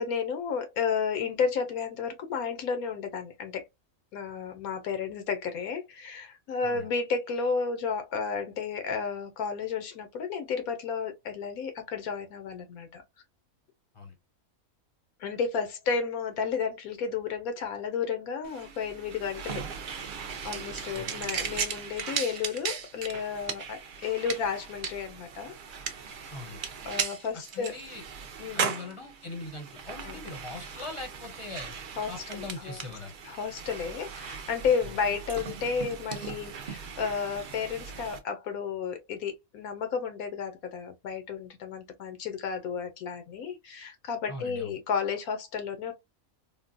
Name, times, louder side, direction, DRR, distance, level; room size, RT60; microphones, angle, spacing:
voice 1, 0.0-3.6 4.1-13.0 15.2-19.7 20.4-25.6 26.8-27.7 28.4-28.7 30.0-30.2 32.0-32.8 33.2-45.9, left 6 dB, 90° left, 1.2 m, -32 dB
sound 1, 18.4-38.2, right 6 dB, 65° right, 0.5 m, -37 dB
voice 2, 26.3-26.6 27.5-28.0 28.5-31.7 32.1-33.1 34.8-34.9 44.3-44.8, left 3 dB, 30° left, 0.6 m, -41 dB
3.7 x 2.1 x 2.5 m
omnidirectional pair, 1.5 m